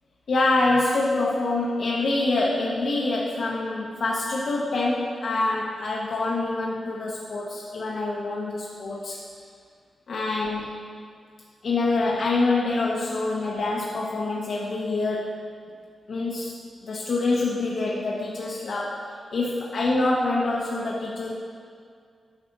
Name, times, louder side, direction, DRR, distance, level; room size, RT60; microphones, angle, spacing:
voice 1, 0.3-9.2 10.1-10.7 11.6-15.3 16.1-16.5 16.8-21.3, left 2 dB, 55° left, -4 dB, 0.9 m, -26 dB
9.6 x 6.5 x 4.0 m, 2.2 s
wide cardioid pair, 160°, 0 cm